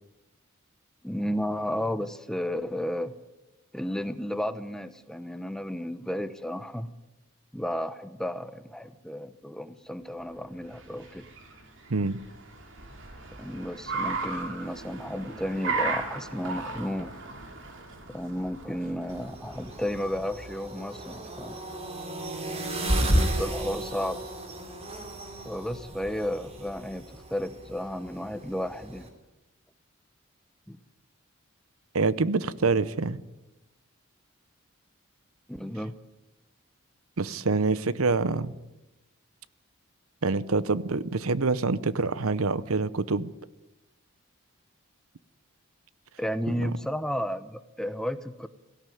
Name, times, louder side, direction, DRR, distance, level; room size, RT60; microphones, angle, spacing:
voice 1, 1.0-3.1 3.7-6.9 7.5-11.2 13.4-17.1 18.1-21.6 23.0-24.2 25.4-27.0 27.3-29.1 30.7-30.8 35.5-35.9 46.2-48.5, equal, 5° left, 0.8 m, -33 dB
Car, 10.3-20.6, right 3 dB, 60° right, 3.3 m, -36 dB
sound 1, 19.1-29.1, right 1 dB, 30° right, 3.3 m, -33 dB
voice 2, 31.9-33.2 37.2-38.5 40.2-43.3 46.6-46.7, right 3 dB, 85° right, 0.8 m, -26 dB
17.0 x 17.0 x 9.3 m
head